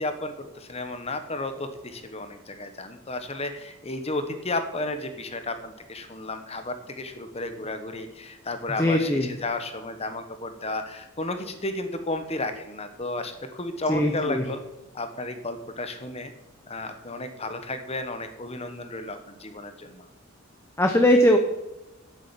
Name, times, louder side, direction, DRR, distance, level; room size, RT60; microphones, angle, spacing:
voice 1, 0.0-14.6 14.9-16.3 16.7-20.0, left 2 dB, 30° left, 8 dB, 1.2 m, -33 dB
voice 2, 8.8-9.3 13.9-14.4 20.8-21.4, left 1 dB, 10° left, 4 dB, 0.9 m, -20 dB
10.0 x 8.5 x 7.6 m, 0.98 s
head